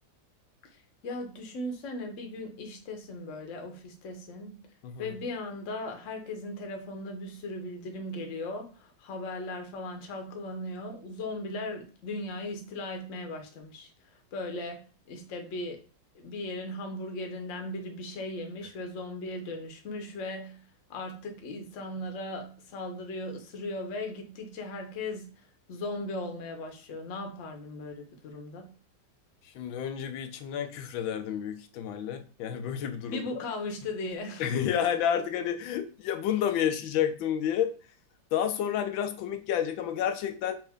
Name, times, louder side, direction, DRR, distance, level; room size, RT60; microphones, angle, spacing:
voice 1, 0.7-4.6 5.0-15.8 16.1-20.6 20.9-28.7 33.1-34.5, left 2 dB, 50° left, 3 dB, 1.0 m, -38 dB
voice 2, 29.4-33.4 34.4-37.7 38.3-40.5, left 9 dB, 85° left, 7 dB, 1.4 m, -30 dB
5.2 x 2.6 x 3.5 m, 0.37 s
omnidirectional pair, 2.1 m